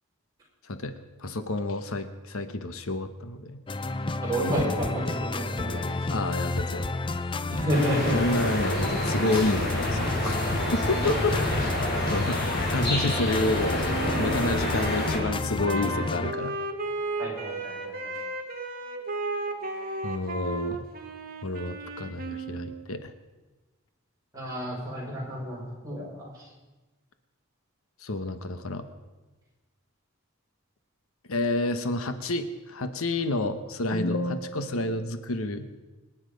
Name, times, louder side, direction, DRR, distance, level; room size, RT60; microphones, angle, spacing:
voice 1, 1.2-3.6 6.1-6.9 8.1-10.6 10.9-11.4 12.1-13.9 14.2-16.5 20.0-20.8 21.4-23.1 28.0-28.8 31.3-35.7, left 2 dB, 75° left, 9 dB, 1.0 m, -29 dB
sound 1, 3.7-16.3, left 3 dB, 20° left, 0.4 m, -31 dB
voice 2, 4.2-5.8 7.5-8.2 10.9-11.4 17.2-18.1 24.3-26.1, equal, 15° right, -6 dB, 6.0 m, -30 dB
sound 2, 7.7-15.2, left 1 dB, 45° left, 5.0 m, -29 dB
Wind instrument woodwind instrument, 13.8-22.8, right 3 dB, 40° right, 1.7 m, -34 dB
25.5 x 9.9 x 5.2 m, 1.2 s
head